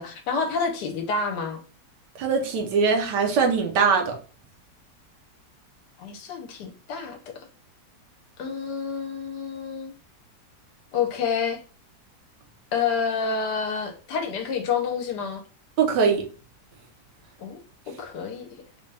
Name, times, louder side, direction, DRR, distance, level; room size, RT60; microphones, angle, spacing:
voice 1, 0.0-1.6 6.0-7.2 8.4-9.9 10.9-11.6 12.7-15.4 17.4-17.6 18.0-18.5, left 5 dB, 75° left, 1.2 m, -28 dB
voice 2, 2.2-4.1 15.8-16.2, right 5 dB, 75° right, 1.4 m, -21 dB
3.9 x 2.2 x 3.3 m
omnidirectional pair, 1.9 m